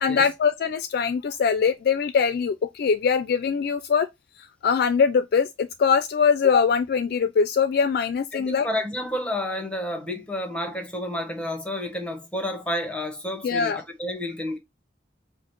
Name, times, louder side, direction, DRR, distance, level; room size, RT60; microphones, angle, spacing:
voice 1, 0.0-4.1 4.4-8.7 13.4-13.8, left 6 dB, 60° left, 0.3 m, -22 dB
voice 2, 8.3-14.6, left 1 dB, 5° left, 0.9 m, -30 dB
4.8 x 2.1 x 3.0 m
head